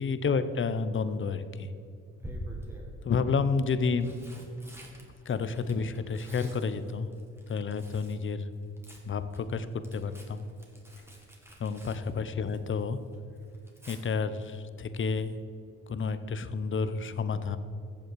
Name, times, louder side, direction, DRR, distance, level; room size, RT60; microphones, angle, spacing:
voice 1, 0.0-1.7 3.0-4.1 5.3-7.1 7.5-8.5 9.0-10.5 11.6-13.0 13.9-15.3 15.9-17.6, left 5 dB, 40° left, 12 dB, 0.8 m, -30 dB
Tearing, 0.8-1.2 2.2-2.9 3.7-8.2 8.5-12.8 13.1-14.0 15.9-16.1 16.4-16.5, equal, 10° right, 2.3 m, -47 dB
14.0 x 7.7 x 4.7 m, 2.5 s
cardioid pair, 90°, 30 cm